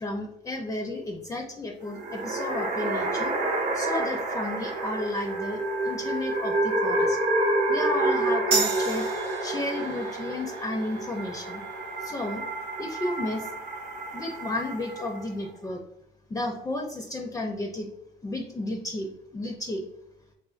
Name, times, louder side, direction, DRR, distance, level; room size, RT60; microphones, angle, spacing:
voice 1, 0.0-3.4 3.7-7.2 7.7-9.1 9.4-11.6 12.0-12.4 12.8-13.5 14.1-15.8 16.3-17.9 18.2-19.8, left 1 dB, 20° left, 2 dB, 0.4 m, -33 dB
sound 1, 1.8-15.2, right 2 dB, 50° right, 0.7 m, -29 dB
sound 2, 8.5-15.6, right 4 dB, 80° right, 0.7 m, -36 dB
3.8 x 2.8 x 2.4 m, 0.78 s
cardioid pair, 110°, 17 cm